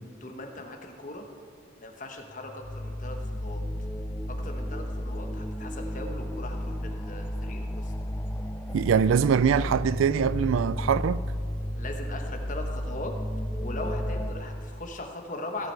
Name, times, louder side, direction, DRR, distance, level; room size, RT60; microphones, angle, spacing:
voice 1, 0.2-1.3 1.8-3.6 4.3-7.9 11.7-13.2 13.6-15.7, left 1 dB, 40° left, 1.1 m, -39 dB
sound 1, 2.3-14.3, equal, 10° left, 0.5 m, -33 dB
voice 2, 8.7-11.2, right 7 dB, 80° right, 0.3 m, -23 dB
17.0 x 7.0 x 4.5 m
head